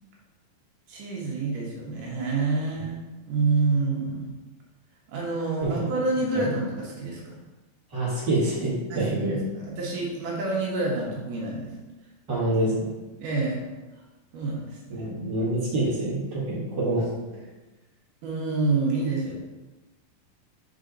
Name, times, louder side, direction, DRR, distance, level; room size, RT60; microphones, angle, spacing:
voice 1, 0.9-3.0 3.3-4.4 5.1-7.4 8.9-11.7 13.2-13.6 14.3-15.1 18.2-19.3, right 3 dB, 70° right, -4 dB, 2.6 m, -28 dB
voice 2, 7.9-9.3 12.3-12.7 14.9-17.1, right 1 dB, 40° right, -8 dB, 1.9 m, -26 dB
6.5 x 4.2 x 3.9 m, 1.1 s
omnidirectional pair, 4.3 m